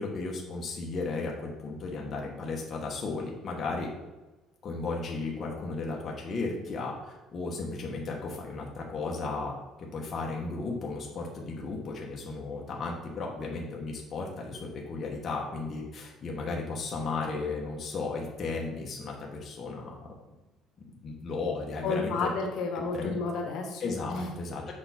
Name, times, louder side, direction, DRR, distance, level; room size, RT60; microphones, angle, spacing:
voice 1, 0.0-3.9 4.6-20.1 21.0-22.3 22.7-23.2 23.8-24.7, left 3 dB, 30° left, -2 dB, 1.1 m, -35 dB
voice 2, 21.8-23.8 24.1-24.3, left 4 dB, 65° left, 2 dB, 1.3 m, -31 dB
6.9 x 5.4 x 4.2 m, 1.1 s
cardioid pair, 155°, 0 cm